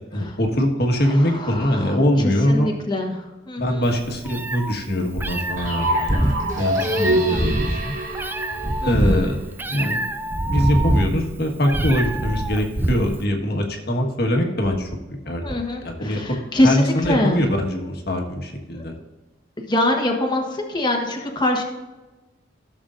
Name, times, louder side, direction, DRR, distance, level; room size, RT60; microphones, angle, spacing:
voice 1, 0.1-2.7 3.6-6.3 6.6-8.0 8.8-9.4 9.7-10.1 10.4-14.9 15.2-15.5 15.8-16.4 16.6-18.9, equal, 60° left, 2 dB, 1.5 m, -22 dB
voice 2, 1.0-3.9 7.0-7.6 8.8-9.3 15.4-17.5 18.7-18.8 19.6-21.6, left 1 dB, 25° left, 1 dB, 1.3 m, -24 dB
Meow, 3.9-13.2, right 1 dB, 10° right, 0.4 m, -25 dB
sound 1, 5.6-9.5, right 1 dB, 45° right, 1.2 m, -25 dB
15.0 x 7.1 x 2.6 m, 1.1 s
head